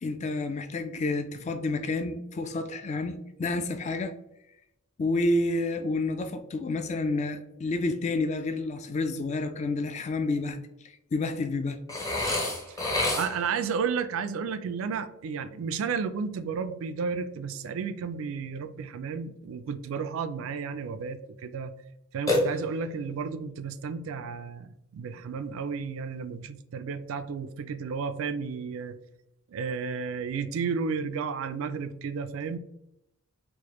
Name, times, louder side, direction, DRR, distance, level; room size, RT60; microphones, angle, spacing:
voice 1, 0.0-4.2 5.0-11.8, left 2 dB, 30° left, 8 dB, 0.3 m, -29 dB
Burping eructation, 11.9-13.6 22.3-23.0, left 1 dB, 15° left, 0.7 m, -28 dB
voice 2, 13.1-21.7 22.1-29.0 29.5-32.6, right 5 dB, 65° right, 11 dB, 0.3 m, -32 dB
4.8 x 2.1 x 3.0 m, 0.83 s
head